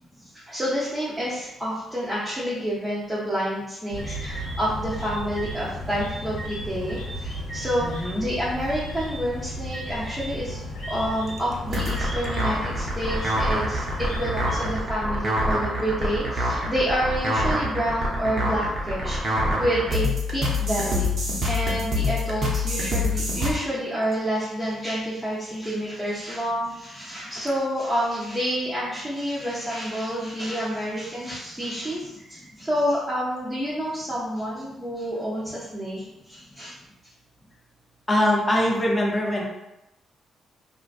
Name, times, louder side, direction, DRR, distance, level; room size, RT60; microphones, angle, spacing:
voice 1, 0.3-10.6 10.9-13.9 14.1-20.1 20.3-21.1 21.5-36.7, equal, 15° right, -10 dB, 0.9 m, -28 dB
sound 1, 3.9-14.8, equal, 90° left, 0.7 m, -34 dB
voice 2, 7.8-8.3 38.1-39.4, left 1 dB, 25° left, -2 dB, 0.7 m, -22 dB
sound 2, 11.7-23.5, left 1 dB, 50° right, 0.7 m, -26 dB
2.4 x 2.1 x 2.4 m, 0.89 s
hypercardioid pair, 45°, 0 cm